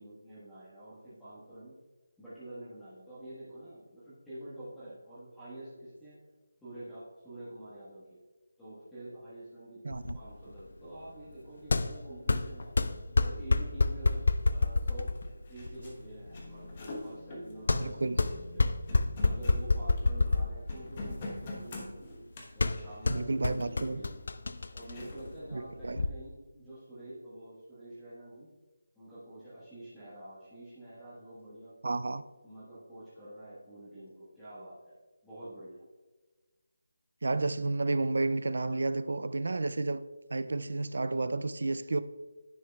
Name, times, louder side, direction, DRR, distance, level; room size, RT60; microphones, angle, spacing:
voice 1, 0.0-1.7 2.2-6.3 6.6-8.2 8.6-12.8 13.2-15.1 15.5-18.8 19.2-22.1 22.5-24.2 24.7-28.5 28.9-31.8 32.4-35.0 35.2-35.8, right 1 dB, 5° left, 1.3 m, -47 dB
voice 2, 9.8-10.2 17.7-18.2 23.1-24.0 25.5-26.0 31.8-32.2 37.2-40.0 40.3-42.0, right 3 dB, 65° right, 0.3 m, -31 dB
sound 1, 9.9-26.1, left 3 dB, 60° left, 0.4 m, -30 dB
sound 2, 14.9-15.0 15.1-20.4 20.7-23.9 24.5-25.4, left 2 dB, 25° left, 1.0 m, -45 dB
10.0 x 6.4 x 2.3 m
figure-of-eight pair, 170°, 0 cm